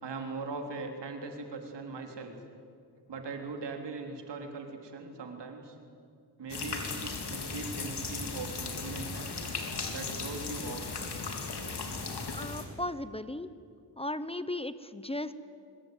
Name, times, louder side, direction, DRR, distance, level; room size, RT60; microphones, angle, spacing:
voice 1, 0.0-2.3 3.1-5.8 6.4-9.3 9.9-10.8, right 3 dB, 85° right, 3 dB, 3.5 m, -40 dB
sound 1, 6.5-12.6, left 4 dB, 70° left, 3.7 m, -37 dB
voice 2, 12.3-13.5 14.0-15.3, left 1 dB, 15° left, 13 dB, 0.9 m, -36 dB
24.0 x 22.0 x 9.3 m, 2.4 s
cardioid pair, 75°, 41 cm